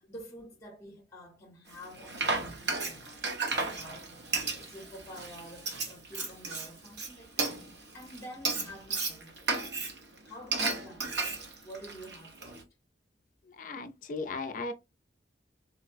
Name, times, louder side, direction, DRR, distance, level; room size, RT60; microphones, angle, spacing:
voice 1, 0.0-4.1 4.5-9.5 10.2-12.6, equal, 15° left, 0.7 m, -49 dB
Frying (food), 1.7-12.6, right 3 dB, 70° right, 0.9 m, -34 dB
voice 2, 13.5-14.7, left 3 dB, 50° left, 0.4 m, -37 dB
3.9 x 2.0 x 2.4 m
head